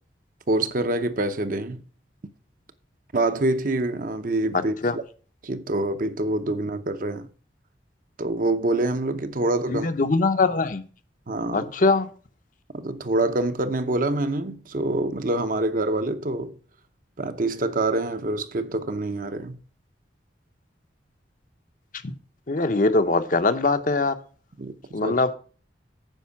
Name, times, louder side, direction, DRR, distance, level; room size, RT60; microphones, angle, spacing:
voice 1, 0.5-1.8 3.1-5.0 5.4-7.3 8.2-9.9 11.3-11.7 12.7-16.6 17.2-19.6 24.6-25.1, right 2 dB, 45° right, 0.8 m, -26 dB
voice 2, 9.7-10.8 11.5-12.1 22.0-22.1 22.5-24.2 24.9-25.3, left 3 dB, 45° left, 0.8 m, -22 dB
9.1 x 5.4 x 7.0 m
head